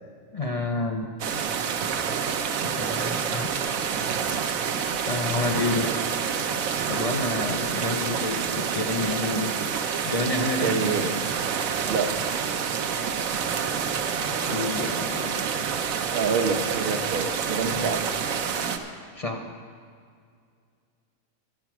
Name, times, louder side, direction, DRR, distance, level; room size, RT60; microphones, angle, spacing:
voice 1, 0.3-1.1 2.6-3.8 5.0-5.9 6.9-9.5 10.0-10.7 14.4-15.4 17.8-18.0 19.2-19.4, left 2 dB, 40° left, 3 dB, 0.5 m, -29 dB
sound 1, 1.2-18.8, right 7 dB, 80° right, 1.2 m, -28 dB
voice 2, 10.6-11.3 11.9-12.1 16.1-18.1, right 5 dB, 50° right, 6 dB, 0.9 m, -27 dB
11.0 x 9.1 x 6.0 m, 2.2 s
omnidirectional pair, 1.4 m